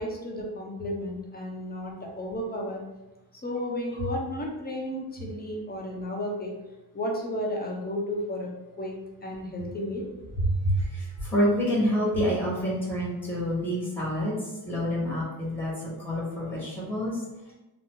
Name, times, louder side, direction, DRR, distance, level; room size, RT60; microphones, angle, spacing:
voice 1, 0.0-2.8 3.3-6.5 6.9-8.5 8.8-10.0, left 1 dB, 20° left, -1 dB, 0.7 m, -33 dB
voice 2, 10.6-14.4 14.6-15.7 16.0-17.2, equal, 5° left, -6 dB, 1.3 m, -27 dB
2.9 x 2.0 x 3.6 m, 1.0 s
cardioid pair, 90°, 46 cm